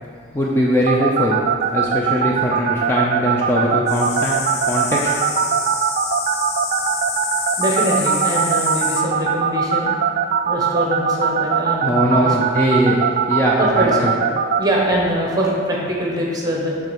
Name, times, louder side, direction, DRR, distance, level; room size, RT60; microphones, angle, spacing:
voice 1, 0.3-1.4 1.7-4.4 4.6-5.1 11.8-13.0 13.3-14.1, equal, 15° left, -4 dB, 0.5 m, -20 dB
sound 1, 0.9-14.6, right 8 dB, 50° right, 0.4 m, -19 dB
sound 2, 3.9-9.0, left 5 dB, 60° left, 0.7 m, -27 dB
voice 2, 4.0-4.5 7.6-9.9 10.5-12.4 13.6-14.1 14.6-16.8, equal, 20° right, -3 dB, 1.2 m, -23 dB
6.6 x 3.6 x 5.9 m, 2.2 s
head